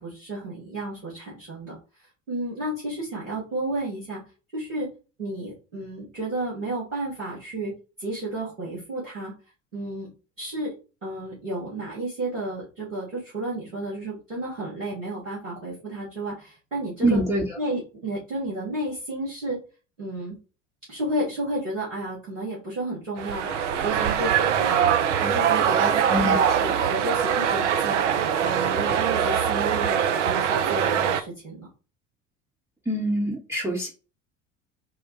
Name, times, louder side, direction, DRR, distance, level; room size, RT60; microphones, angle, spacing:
voice 1, 0.0-4.2 4.5-4.9 5.2-7.7 8.0-9.3 9.7-10.1 10.4-10.7 11.0-17.2 17.6-19.6 20.0-20.4 20.9-31.7, right 1 dB, 85° right, -7 dB, 1.7 m, -32 dB
voice 2, 17.0-17.4 26.1-26.4 32.9-33.9, right 1 dB, 10° right, -4 dB, 0.8 m, -24 dB
sound 1, 23.2-31.2, right 8 dB, 70° right, 0.6 m, -23 dB
3.7 x 2.2 x 4.2 m, 0.34 s
figure-of-eight pair, 70°, 37 cm